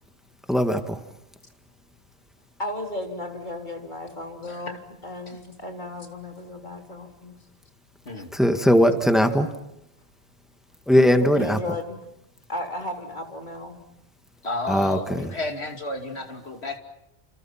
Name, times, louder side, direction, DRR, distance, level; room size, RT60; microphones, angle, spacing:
voice 1, 0.5-0.8 8.3-9.5 10.9-11.6 14.7-15.0, equal, ahead, 6 dB, 1.8 m, -19 dB
voice 2, 2.6-7.3 11.2-12.1 12.5-13.9, left 1 dB, 45° left, 2 dB, 3.5 m, -35 dB
voice 3, 4.4-4.8 5.3-5.4 8.0-8.3 14.4-16.8, left 2 dB, 75° left, 4 dB, 3.0 m, -32 dB
29.5 x 28.0 x 5.8 m, 0.82 s
omnidirectional pair, 1.1 m